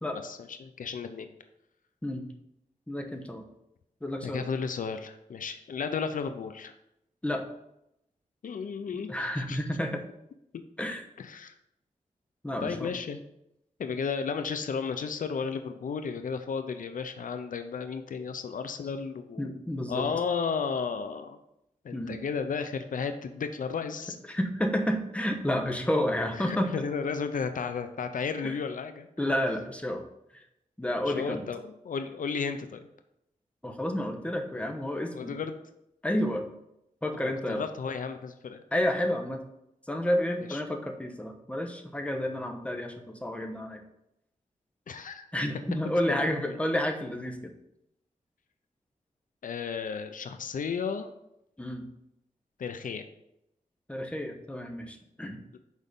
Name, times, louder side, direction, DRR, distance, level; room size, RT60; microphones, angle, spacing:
voice 1, 0.1-1.3 4.2-6.7 8.4-9.6 10.5-10.6 11.2-11.5 12.6-13.2 13.8-19.5 19.9-21.4 21.8-24.2 26.3-29.1 31.1-32.8 35.1-35.5 37.2-38.6 40.4-40.6 44.9-45.3 46.1-46.6 49.4-51.1 52.6-53.0 55.5-55.6, left 5 dB, 85° left, 8 dB, 0.6 m, -33 dB
voice 2, 2.9-3.4 4.0-4.5 7.2-7.4 9.1-10.0 10.8-11.0 12.4-12.9 19.4-20.1 21.9-22.2 24.2-26.7 28.4-28.6 29.2-30.0 30.3-30.4 30.8-31.4 33.6-35.3 36.0-36.4 37.0-37.7 38.7-39.4 39.9-43.8 45.3-47.5 51.6-51.9 53.9-55.4, left 1 dB, 10° left, 3 dB, 1.1 m, -30 dB
6.3 x 5.0 x 5.3 m, 0.83 s
wide cardioid pair, 85°, 14 cm